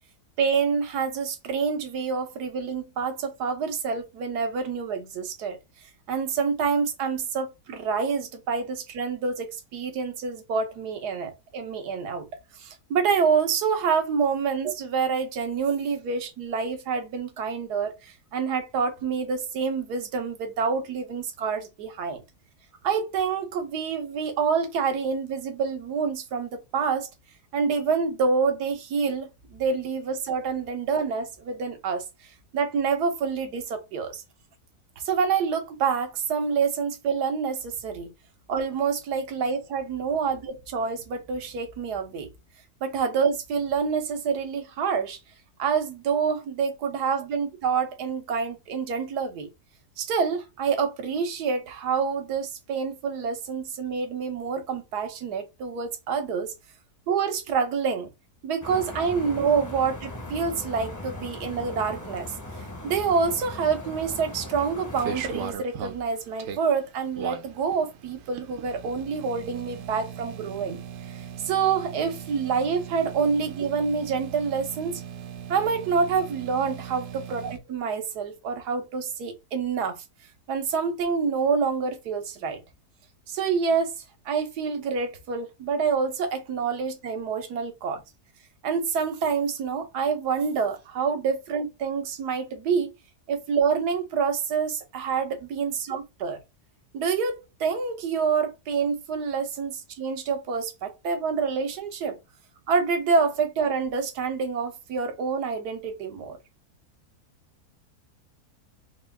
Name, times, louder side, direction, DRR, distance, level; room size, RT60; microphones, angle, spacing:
voice 1, 0.4-5.6 6.1-12.3 12.6-22.2 22.8-27.1 27.5-32.0 32.5-34.2 35.0-38.1 38.5-42.3 42.8-45.2 45.6-49.5 50.0-56.5 57.1-58.1 58.4-62.3 62.8-70.8 71.1-75.0 75.5-80.0 80.5-82.6 83.3-83.9 84.2-88.0 88.6-92.9 93.3-96.4 96.9-102.2 102.7-106.4, right 5 dB, 90° right, 1.4 m, -27 dB
sound 1, 58.6-65.5, left 1 dB, 20° left, 0.4 m, -39 dB
sound 2, 64.6-77.6, right 8 dB, 65° right, 0.8 m, -39 dB
4.6 x 2.3 x 3.3 m
omnidirectional pair, 1.7 m